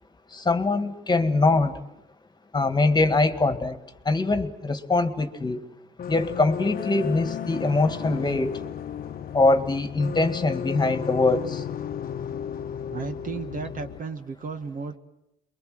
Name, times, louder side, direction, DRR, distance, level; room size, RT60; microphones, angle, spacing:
voice 1, 0.3-1.7 2.5-3.8 4.1-5.6 6.1-8.5 9.3-11.6, left 3 dB, 20° left, 9 dB, 1.9 m, -23 dB
sound 1, 6.0-14.0, left 9 dB, 50° left, 1.1 m, -34 dB
voice 2, 12.9-15.0, right 5 dB, 45° right, 8 dB, 1.7 m, -34 dB
28.5 x 23.0 x 7.8 m, 0.87 s
cardioid pair, 95°, 19 cm